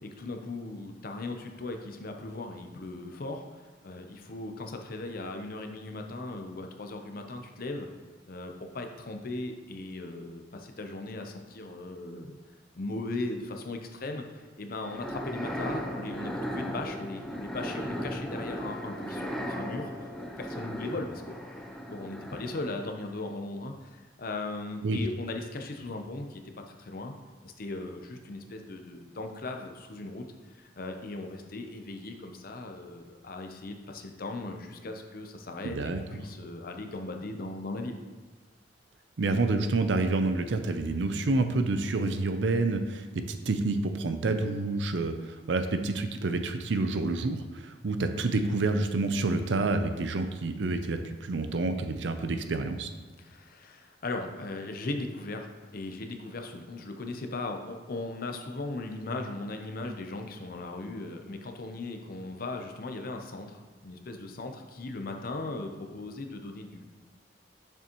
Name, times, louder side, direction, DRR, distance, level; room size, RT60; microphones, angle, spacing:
voice 1, 0.0-7.9 8.3-12.4 12.7-20.1 20.4-21.4 21.9-27.1 27.4-38.0 53.2-66.9, left 2 dB, 55° left, 4 dB, 0.7 m, -38 dB
sound 1, 14.8-22.8, equal, 5° left, 0.5 m, -36 dB
voice 2, 35.6-36.0 39.2-52.9, right 3 dB, 80° right, 8 dB, 0.5 m, -28 dB
6.9 x 6.1 x 3.0 m, 1.4 s
head